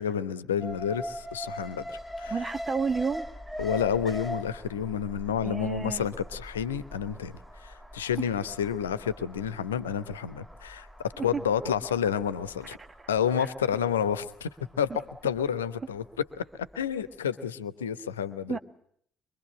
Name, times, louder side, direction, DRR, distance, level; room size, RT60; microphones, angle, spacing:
voice 1, 0.0-2.3 3.6-12.8 13.1-16.0 16.4-18.6, left 8 dB, 80° left, 14 dB, 0.9 m, -30 dB
Alarm, 0.6-16.7 17.0-17.1, equal, 15° right, 5.8 m, -42 dB
voice 2, 2.3-3.3 5.4-6.0 18.5-18.6, right 5 dB, 30° right, 10 dB, 1.6 m, -30 dB
24.5 x 24.0 x 7.8 m, 0.66 s
figure-of-eight pair, 50°, 0 cm